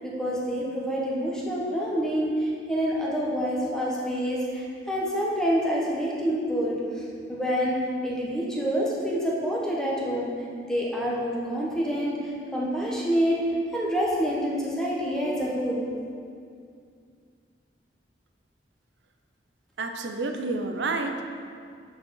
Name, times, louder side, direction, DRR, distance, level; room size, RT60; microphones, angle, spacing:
voice 1, 0.0-6.8 7.3-7.7 8.0-10.3 10.7-12.2 12.5-13.4 13.7-15.9, equal, 5° left, -5 dB, 1.1 m, -27 dB
voice 2, 19.8-21.2, right 3 dB, 75° right, 5 dB, 0.6 m, -29 dB
8.3 x 4.8 x 4.7 m, 2.3 s
head